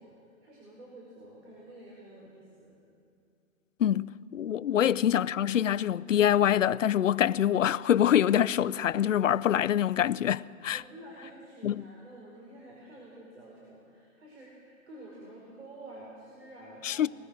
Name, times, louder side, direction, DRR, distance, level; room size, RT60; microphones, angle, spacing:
voice 1, 0.0-2.8 4.7-4.9 10.7-17.1, right 1 dB, 50° right, 5.1 m, -49 dB
voice 2, 3.8-10.8 11.6-11.8 16.8-17.1, left 10 dB, 65° left, 0.5 m, -25 dB
21.0 x 20.0 x 6.4 m
hypercardioid pair, 175°, 42 cm